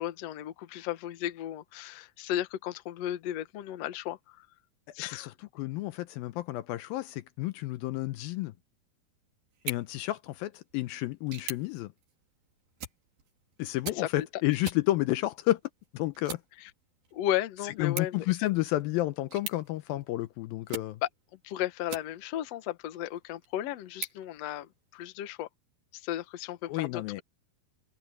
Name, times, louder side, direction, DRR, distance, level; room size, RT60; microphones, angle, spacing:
voice 1, 0.0-4.5 4.9-5.3 14.0-14.3 16.6-16.7 17.1-18.3 21.0-21.1 21.4-25.5 25.9-27.0, left 12 dB, 65° left, 1.7 m, -34 dB
voice 2, 5.6-8.5 9.6-11.9 13.6-15.6 15.9-16.4 17.8-21.0 26.6-27.2, left 16 dB, 80° left, 2.4 m, -31 dB
sound 1, 9.5-22.5 23.0-25.1, right 6 dB, 65° right, 6.1 m, -45 dB
omnidirectional pair, 4.4 m